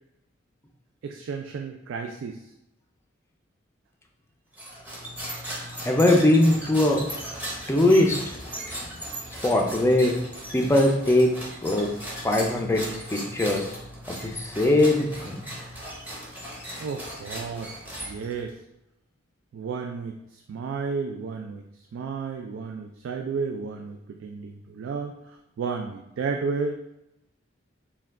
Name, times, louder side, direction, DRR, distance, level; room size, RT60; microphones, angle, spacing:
voice 1, 1.0-2.4 16.8-17.7 18.0-18.6 19.5-21.6 21.9-26.8, right 5 dB, 75° right, 4 dB, 0.3 m, -32 dB
sound 1, 4.5-18.5, equal, 10° right, 0.8 m, -37 dB
voice 2, 5.8-7.0 7.7-8.4 9.4-10.1 10.5-11.3 11.6-11.9 12.2-12.8 13.1-13.7 14.1-15.4, left 1 dB, 15° left, 2 dB, 0.4 m, -21 dB
4.4 x 2.3 x 3.6 m, 0.87 s
head